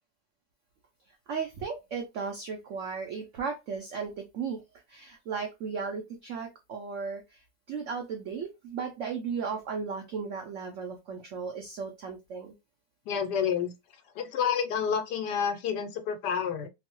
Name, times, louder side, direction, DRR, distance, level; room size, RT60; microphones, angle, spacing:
voice 1, 1.3-4.6 4.9-12.5, right 5 dB, 85° right, 0.6 m, -35 dB
voice 2, 13.1-13.7 14.2-16.7, left 7 dB, 75° left, 1.2 m, -29 dB
2.9 x 2.0 x 2.9 m
omnidirectional pair, 1.9 m